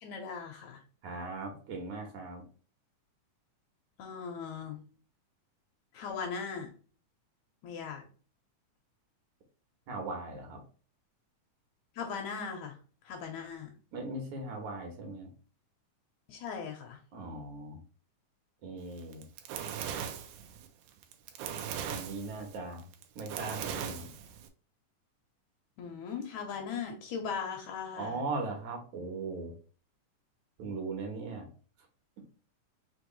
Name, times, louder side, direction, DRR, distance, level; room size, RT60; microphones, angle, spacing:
voice 1, 0.0-0.8 4.0-4.8 5.9-6.7 7.6-8.0 12.0-12.8 13.1-13.7 16.3-17.0 25.8-28.2, left 6 dB, 70° left, 3 dB, 2.0 m, -38 dB
voice 2, 1.0-2.4 9.9-10.6 13.9-15.3 17.1-17.8 18.6-19.2 21.9-22.8 23.2-24.1 28.0-29.5 30.6-31.5, right 3 dB, 65° right, 2 dB, 2.4 m, -39 dB
Fire, 19.0-24.5, right 8 dB, 80° right, 2.1 m, -39 dB
5.3 x 3.1 x 3.0 m, 0.39 s
omnidirectional pair, 3.7 m